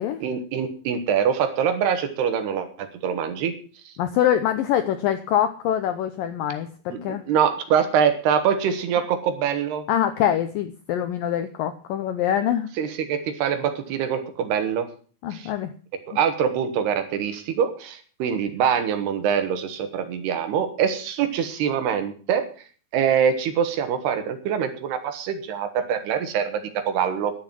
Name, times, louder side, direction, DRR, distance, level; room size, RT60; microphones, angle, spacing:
voice 1, 0.2-3.5 3.9-4.0 6.9-9.8 12.8-14.9 15.3-15.5 16.1-22.5 22.9-27.3, right 8 dB, 70° right, 9 dB, 3.3 m, -24 dB
voice 2, 4.0-7.2 9.9-12.7 15.2-15.7, left 10 dB, 85° left, 9 dB, 2.0 m, -24 dB
11.5 x 9.5 x 7.6 m, 0.41 s
omnidirectional pair, 5.1 m